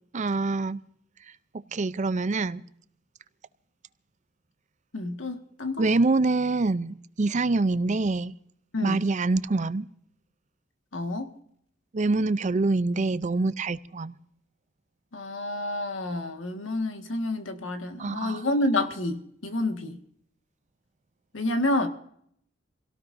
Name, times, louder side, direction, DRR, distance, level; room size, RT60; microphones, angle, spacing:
voice 1, 0.1-0.8 1.5-2.6 5.8-8.3 8.8-9.9 11.9-14.1 18.0-18.4, right 3 dB, 40° right, 0.5 m, -25 dB
voice 2, 4.9-5.8 8.7-9.0 10.9-11.3 15.1-20.0 21.3-21.9, left 1 dB, 90° left, 1.8 m, -29 dB
27.5 x 17.5 x 2.7 m
head